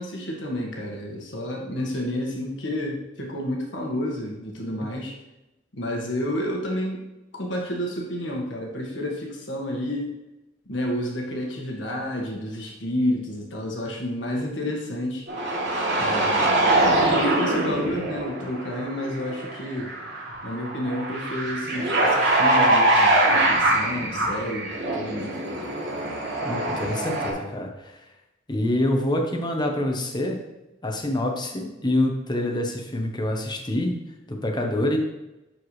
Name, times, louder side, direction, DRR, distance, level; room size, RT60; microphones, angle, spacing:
voice 1, 0.0-5.1 5.7-7.0 7.3-10.1 10.6-15.2 15.9-19.9 20.4-25.4, left 1 dB, 70° left, -1 dB, 1.7 m, -30 dB
sound 1, 15.3-27.3, right 2 dB, 65° right, 2.7 m, -23 dB
voice 2, 26.4-28.0 28.5-30.4 30.8-34.0 34.3-35.0, left 1 dB, 25° left, 2 dB, 1.0 m, -26 dB
11.0 x 4.6 x 3.3 m, 0.99 s
head